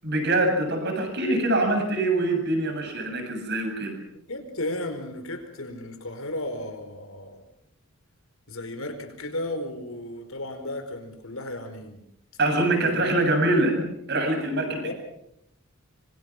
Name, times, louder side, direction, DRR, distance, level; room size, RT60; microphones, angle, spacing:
voice 1, 0.0-3.9 12.4-14.9, right 2 dB, 50° right, 5 dB, 7.6 m, -24 dB
voice 2, 4.1-7.4 8.5-12.0 12.6-13.1 14.8-14.9, left 1 dB, 70° left, 6 dB, 4.8 m, -34 dB
25.5 x 25.5 x 6.1 m, 0.77 s
head